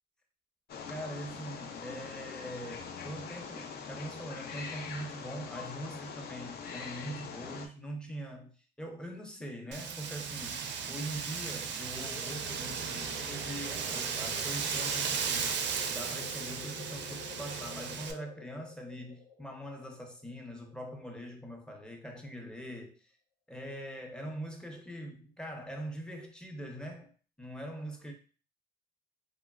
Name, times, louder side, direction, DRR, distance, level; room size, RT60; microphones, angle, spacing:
Wild animals, 0.7-7.7, left 6 dB, 55° left, 0.5 m, -43 dB
voice 1, 0.9-15.6 15.9-23.1 23.5-27.1 27.4-28.1, right 1 dB, 5° left, 0.6 m, -43 dB
Wind, 9.7-18.1, right 6 dB, 65° right, 0.4 m, -36 dB
sound 1, 12.0-21.3, left 4 dB, 80° left, 1.2 m, -49 dB
2.9 x 2.2 x 2.3 m
cardioid pair, 90°, 20 cm